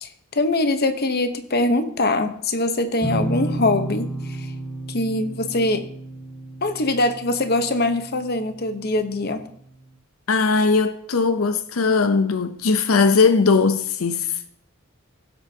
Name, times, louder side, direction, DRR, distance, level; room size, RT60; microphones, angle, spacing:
voice 1, 0.0-4.5 4.9-5.8 6.6-9.5, left 2 dB, 50° left, 1.0 m, -23 dB
sound 1, 3.0-8.6, right 2 dB, 10° left, 1.2 m, -31 dB
voice 2, 10.3-14.4, left 4 dB, 90° left, 0.7 m, -19 dB
16.0 x 8.1 x 2.8 m
head